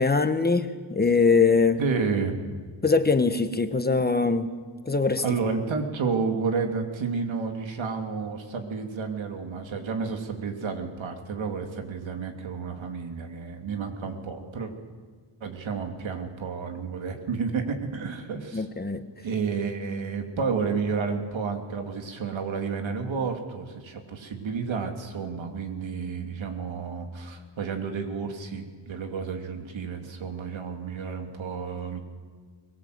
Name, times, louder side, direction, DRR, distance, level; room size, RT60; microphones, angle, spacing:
voice 1, 0.0-1.8 2.8-4.5 4.9-5.2 18.5-19.0, left 4 dB, 20° left, 9 dB, 1.1 m, -22 dB
voice 2, 1.8-2.4 5.2-14.7 15.4-18.7 19.2-32.0, right 5 dB, 90° right, 4 dB, 2.9 m, -31 dB
23.0 x 21.0 x 8.0 m, 1.5 s
wide cardioid pair, 145°, 45 cm